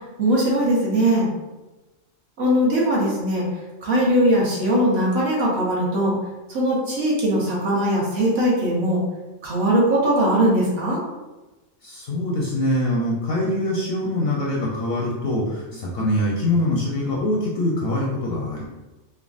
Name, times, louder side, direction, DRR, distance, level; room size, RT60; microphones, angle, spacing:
voice 1, 0.2-1.3 2.4-3.5 3.8-6.1 6.5-9.0 9.4-11.0, right 1 dB, 55° right, -5 dB, 1.0 m, -20 dB
voice 2, 11.8-18.6, left 1 dB, 65° left, -3 dB, 0.6 m, -24 dB
3.5 x 2.0 x 2.4 m, 1.1 s
omnidirectional pair, 1.3 m